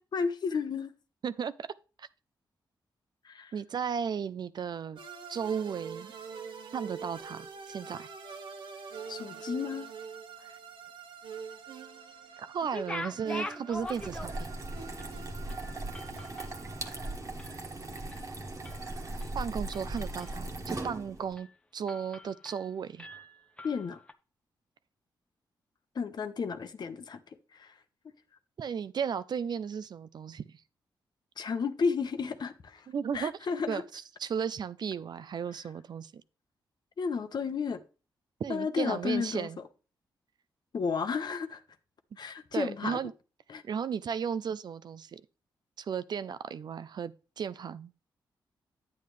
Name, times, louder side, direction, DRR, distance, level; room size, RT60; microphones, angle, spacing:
voice 1, 0.1-0.9 3.2-3.5 9.1-9.9 23.6-24.0 25.9-27.2 27.5-27.7 31.4-32.9 33.1-33.8 37.0-37.8 38.5-39.6 40.7-41.6 42.2-43.0 43.5-43.6, left 5 dB, 60° left, 0.9 m, -32 dB
voice 2, 1.2-1.7 2.0-2.1 3.5-5.0 5.3-6.1 6.7-8.1 10.4-10.6 12.4-14.5 19.3-21.5 21.7-23.1 28.6-30.5 32.9-33.3 33.7-36.2 38.4-39.6 42.2-43.1 43.6-45.2 45.8-47.9, right 7 dB, 60° right, 0.5 m, -35 dB
sound 1, 5.0-17.2, right 6 dB, 80° right, 0.9 m, -45 dB
sound 2, 12.6-14.6 15.0-15.1 15.5-17.6 18.0-18.3 18.6-19.3 19.7-20.4 20.8-21.0 21.4-21.5 21.9-22.7 23.0-24.1, left 2 dB, 15° left, 0.8 m, -43 dB
sound 3, 13.7-21.3, right 2 dB, 40° right, 1.5 m, -39 dB
9.3 x 8.5 x 3.2 m
cardioid pair, 70°, 8 cm